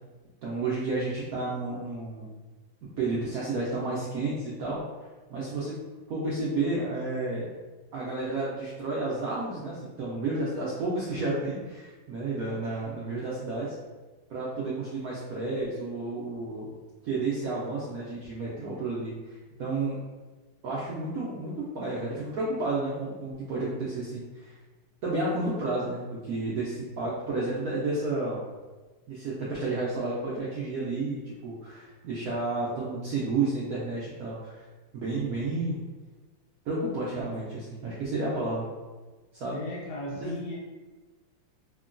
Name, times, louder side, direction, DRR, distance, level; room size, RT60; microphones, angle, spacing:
voice 1, 0.4-2.3 2.8-4.8 5.3-5.8 6.1-7.5 7.9-13.8 14.3-16.7 17.0-20.0 20.6-24.5 25.0-28.4 29.1-34.6 34.9-35.8 36.7-38.7 39.3-39.6 40.2-40.3, right 2 dB, 80° right, -6 dB, 0.8 m, -31 dB
voice 2, 39.5-40.6, left 1 dB, 75° left, -2 dB, 1.0 m, -36 dB
3.6 x 2.2 x 2.4 m, 1.3 s
omnidirectional pair, 2.1 m